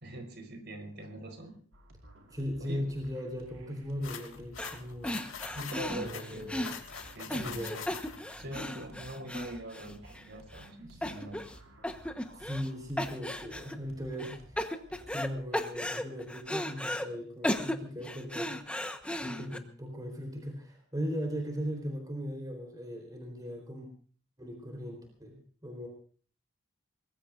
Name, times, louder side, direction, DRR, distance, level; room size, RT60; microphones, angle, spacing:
voice 1, 0.0-1.5 2.6-2.8 5.5-6.5 7.1-7.8 8.4-11.4, right 1 dB, 55° right, 5 dB, 4.5 m, -43 dB
sound 1, 1.7-15.4, right 1 dB, 75° right, 4.9 m, -55 dB
voice 2, 2.3-5.2 5.9-6.7 7.2-7.9 10.9-11.3 12.3-14.7 15.1-18.6 19.2-23.9 24.4-25.9, equal, 20° right, 2 dB, 4.0 m, -38 dB
sound 2, 4.0-8.4, left 7 dB, 80° left, 2.8 m, -44 dB
sound 3, 4.6-4.8 5.0-10.2 10.5-10.7 11.0-11.6 11.8-12.7 13.0-13.7 14.2-15.3 15.5-17.1 17.4-19.6, left 1 dB, 5° left, 1.2 m, -35 dB
24.0 x 20.5 x 2.6 m, 0.43 s
head